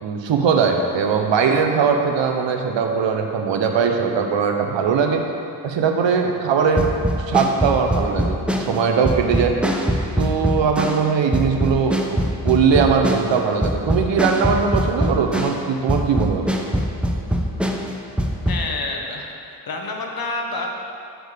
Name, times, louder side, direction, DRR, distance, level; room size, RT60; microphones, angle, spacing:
voice 1, 0.0-5.2 5.6-6.9 7.3-9.6 10.2-12.2 12.4-16.5, right 6 dB, 80° right, 4 dB, 0.8 m, -20 dB
sound 1, 6.8-15.6 15.9-18.6, equal, ahead, 0.7 m, -22 dB
voice 2, 18.5-20.7, left 3 dB, 55° left, 1 dB, 1.2 m, -28 dB
6.3 x 4.9 x 6.6 m, 2.7 s
cardioid pair, 60°, 44 cm